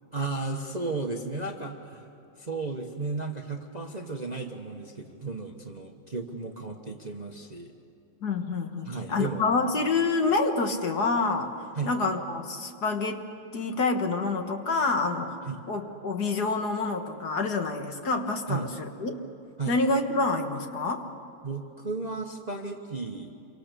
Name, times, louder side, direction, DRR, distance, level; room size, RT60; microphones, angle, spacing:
voice 1, 0.1-2.1 2.4-7.7 8.8-9.5 11.7-11.9 15.5-15.7 18.5-18.7 19.6-19.8 21.4-23.3, right 3 dB, 25° right, 3 dB, 1.0 m, -34 dB
voice 2, 8.2-11.5 11.9-13.3 13.5-15.4 15.7-19.2 19.7-21.0, left 3 dB, 55° left, 5 dB, 1.9 m, -27 dB
27.5 x 24.5 x 6.9 m, 2.7 s
omnidirectional pair, 2.1 m